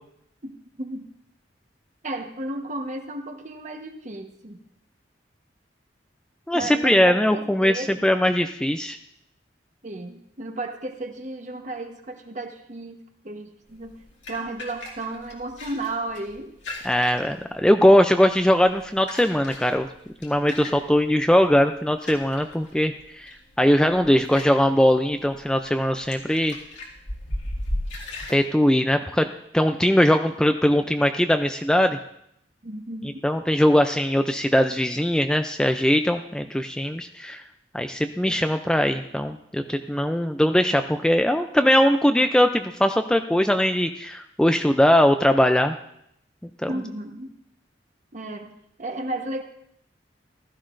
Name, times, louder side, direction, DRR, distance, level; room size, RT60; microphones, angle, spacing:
voice 1, 2.0-4.6 6.5-7.9 9.8-14.0 14.3-16.5 32.6-33.1 46.7-47.3 48.1-48.5 48.8-49.4, right 2 dB, 40° right, 5 dB, 1.1 m, -33 dB
voice 2, 6.5-9.0 16.8-19.9 20.2-26.6 28.3-29.3 29.5-32.0 33.2-37.4 37.7-45.7 46.6-46.7, equal, 5° left, 7 dB, 0.3 m, -20 dB
sound 1, 13.7-28.4, left 1 dB, 75° left, 2.2 m, -38 dB
15.5 x 13.5 x 2.5 m, 0.74 s
head